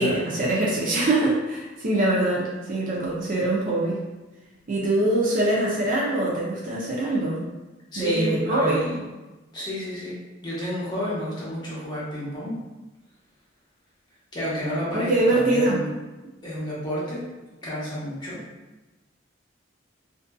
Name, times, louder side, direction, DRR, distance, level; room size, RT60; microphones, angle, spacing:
voice 1, 0.0-4.0 4.7-7.4 8.0-8.8 14.9-15.8, right 2 dB, 45° right, -5 dB, 0.5 m, -23 dB
voice 2, 7.9-9.0 9.5-10.2 10.4-12.6 14.3-15.9 16.4-17.2 17.6-18.4, equal, 20° left, -8 dB, 0.8 m, -30 dB
2.5 x 2.5 x 2.2 m, 1.1 s
head